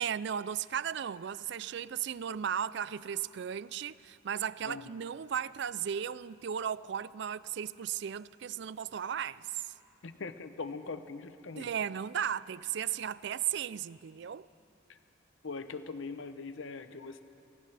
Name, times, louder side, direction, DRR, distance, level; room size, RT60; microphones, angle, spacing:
voice 1, 0.0-9.7 11.6-14.5, right 8 dB, 60° right, 0.4 m, -35 dB
voice 2, 10.0-11.7 14.9-15.0 15.4-17.2, left 4 dB, 75° left, 0.8 m, -41 dB
29.5 x 26.0 x 3.4 m
head